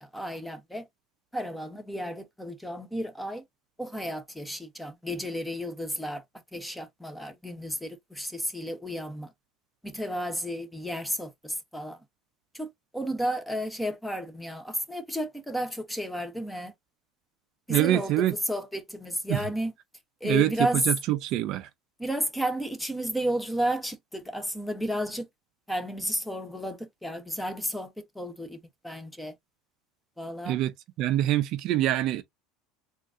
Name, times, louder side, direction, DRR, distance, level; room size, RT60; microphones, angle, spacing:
voice 1, 0.0-0.8 1.3-3.4 3.8-6.2 6.5-9.3 9.8-12.0 12.5-16.7 17.7-19.7 20.2-20.8 22.0-25.3 25.7-29.3 30.2-30.6, equal, 5° left, 0.8 m, -32 dB
voice 2, 17.7-18.3 19.3-19.5 20.2-20.5 20.9-21.7 30.5-30.7 31.0-32.2, right 14 dB, 55° right, 0.4 m, -25 dB
3.7 x 2.5 x 2.4 m
supercardioid pair, 120°, 0 cm